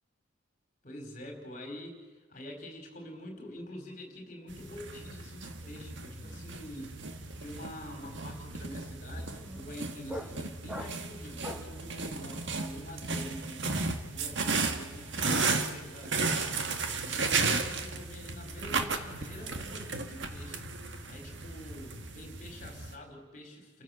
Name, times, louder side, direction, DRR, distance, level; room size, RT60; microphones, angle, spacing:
voice 1, 0.8-7.0 7.4-13.8 14.1-16.6 17.0-20.7 21.1-23.8, left 1 dB, 35° left, 3 dB, 4.4 m, -46 dB
sound 1, 4.5-22.9, right 4 dB, 55° right, 1.7 m, -34 dB
sound 2, 5.3-5.4 5.6-11.8, equal, 5° right, 1.9 m, -46 dB
sound 3, 5.8-8.0 8.4-9.6 9.9-10.9 11.3-13.9 14.1-17.9, right 2 dB, 70° right, 6.9 m, -60 dB
30.0 x 14.5 x 7.1 m, 1.4 s
head